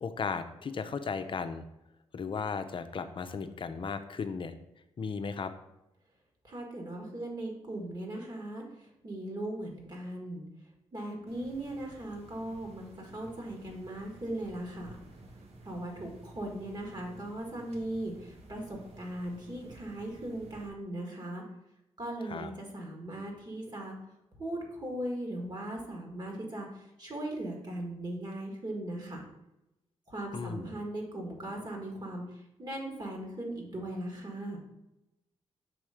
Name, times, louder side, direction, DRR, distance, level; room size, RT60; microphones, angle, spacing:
voice 1, 0.0-1.6 2.1-4.5 5.0-5.5 22.2-22.5 30.3-30.7, left 5 dB, 50° left, 9 dB, 0.6 m, -35 dB
voice 2, 6.4-10.4 10.9-15.0 15.6-21.4 22.0-23.9 24.4-29.2 30.1-32.2 32.6-34.6, right 1 dB, 40° right, 0 dB, 1.8 m, -38 dB
sound 1, 11.3-20.7, right 2 dB, 65° right, 1.0 m, -53 dB
6.1 x 3.1 x 4.9 m, 0.90 s
cardioid pair, 70°, 11 cm